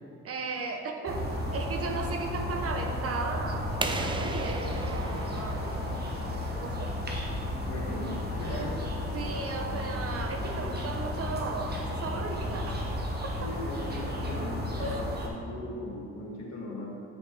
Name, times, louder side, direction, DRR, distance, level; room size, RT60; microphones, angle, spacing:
voice 1, 0.2-5.8 6.5-6.9 8.5-8.7 9.1-12.8 13.2-13.5 14.8-15.1, right 3 dB, 50° right, 3 dB, 0.8 m, -36 dB
sound 1, 1.1-15.3, left 1 dB, 35° right, 1.2 m, -33 dB
sound 2, 3.8-6.5, right 3 dB, 15° right, 0.4 m, -36 dB
voice 2, 7.6-8.7 10.6-10.7 13.4-15.0 15.3-16.9, left 1 dB, 60° left, -3 dB, 1.7 m, -38 dB
8.8 x 5.2 x 3.3 m, 2.6 s
cardioid pair, 90°, 30 cm